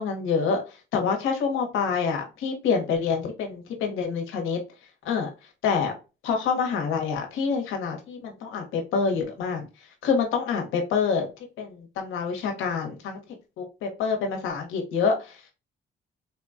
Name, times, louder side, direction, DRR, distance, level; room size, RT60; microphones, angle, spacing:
voice 1, 0.0-4.6 5.0-5.3 5.6-5.9 6.2-9.7 10.0-11.3 11.6-13.2 13.6-15.4, left 5 dB, 90° left, 3 dB, 1.0 m, -27 dB
4.1 x 2.2 x 2.5 m, 0.30 s
cardioid pair, 90°, 20 cm